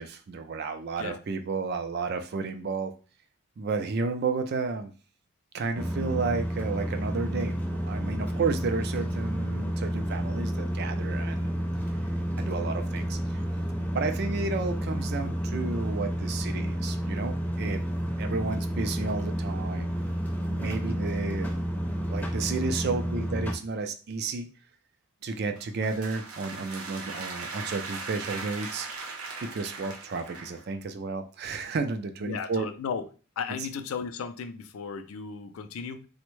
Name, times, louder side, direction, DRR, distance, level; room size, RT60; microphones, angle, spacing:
voice 1, 0.0-2.9 3.6-4.9 5.5-7.5 7.8-11.5 12.4-13.4 13.9-17.8 18.2-19.9 20.4-21.5 22.1-24.5 25.2-28.9 29.4-32.7 33.6-33.7, right 4 dB, 45° right, 8 dB, 0.3 m, -32 dB
sound 1, 5.7-23.5, equal, 5° left, 0.5 m, -30 dB
sound 2, 25.6-30.7, right 4 dB, 90° right, 0.7 m, -39 dB
voice 2, 32.3-33.1 33.4-36.1, left 6 dB, 70° left, 9 dB, 0.4 m, -35 dB
3.4 x 2.1 x 3.1 m, 0.36 s
head